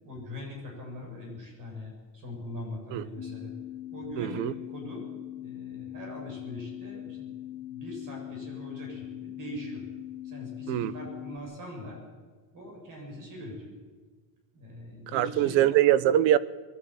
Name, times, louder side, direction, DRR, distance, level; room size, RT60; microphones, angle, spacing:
voice 1, 0.0-3.5 3.9-5.0 5.3-7.4 7.6-9.8 10.2-12.0 12.5-13.7 14.5-15.7, left 1 dB, 45° right, 7.7 m, -42 dB
sound 1, 3.2-11.4, left 13 dB, 20° left, 1.4 m, -41 dB
voice 2, 4.2-4.5 10.7-10.9 15.1-16.4, right 12 dB, 80° right, 1.0 m, -23 dB
22.0 x 13.5 x 9.4 m
cardioid pair, 175°, 44 cm